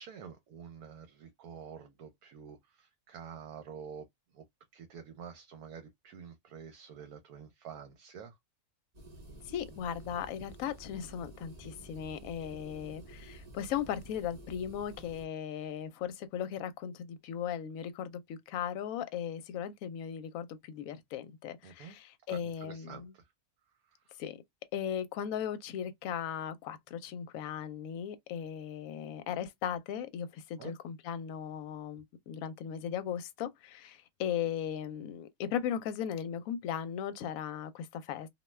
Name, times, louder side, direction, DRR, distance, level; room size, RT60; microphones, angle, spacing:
voice 1, 0.0-4.1 4.3-4.4 4.7-8.3 21.6-22.0 22.3-23.3 24.1-24.2 30.6-30.7, right 7 dB, 80° right, 1.1 m, -48 dB
sound 1, 8.9-15.2, right 2 dB, 35° right, 0.8 m, -51 dB
voice 2, 9.5-23.1 24.2-24.4 24.7-38.3, left 9 dB, 75° left, 1.0 m, -37 dB
2.5 x 2.2 x 3.1 m
omnidirectional pair, 1.6 m